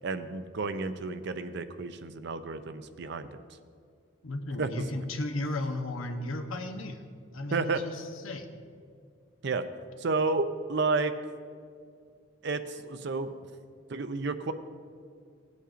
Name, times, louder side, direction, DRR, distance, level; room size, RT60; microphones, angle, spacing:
voice 1, 0.0-3.4 4.6-4.7 7.5-7.8 9.4-9.6 10.0-11.1 12.4-13.3 13.9-14.5, right 3 dB, 55° right, 10 dB, 0.5 m, -31 dB
voice 2, 4.2-7.0 7.3-8.5, left 1 dB, 85° left, 6 dB, 0.9 m, -35 dB
17.5 x 8.4 x 2.5 m, 2.2 s
head